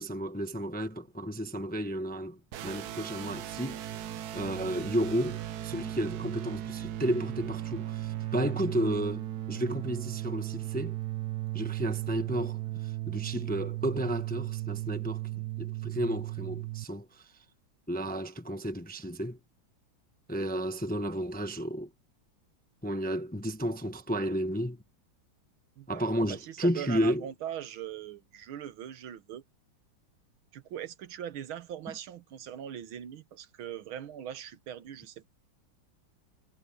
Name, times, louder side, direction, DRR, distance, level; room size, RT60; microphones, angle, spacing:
voice 1, 0.0-4.0 4.3-5.4 5.6-10.9 11.5-17.0 17.9-19.4 20.3-21.9 22.8-24.8 25.9-27.2, equal, 10° left, 0.6 m, -32 dB
sound 1, 2.5-16.8, right 15 dB, 65° right, 1.1 m, -36 dB
voice 2, 25.8-29.4 30.5-35.3, right 10 dB, 85° right, 1.9 m, -41 dB
omnidirectional pair, 2.2 m